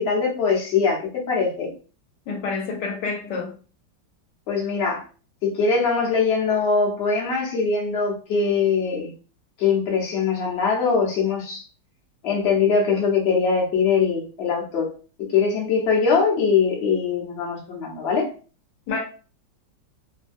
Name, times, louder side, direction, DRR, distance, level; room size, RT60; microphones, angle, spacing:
voice 1, 0.0-1.7 4.5-5.0 5.4-9.1 9.6-11.6 12.2-14.9 15.3-18.3, left 5 dB, 50° left, 0.9 m, -22 dB
voice 2, 2.3-3.5 18.9-19.0, left 4 dB, 70° left, 1.3 m, -28 dB
3.2 x 2.1 x 2.6 m
omnidirectional pair, 2.0 m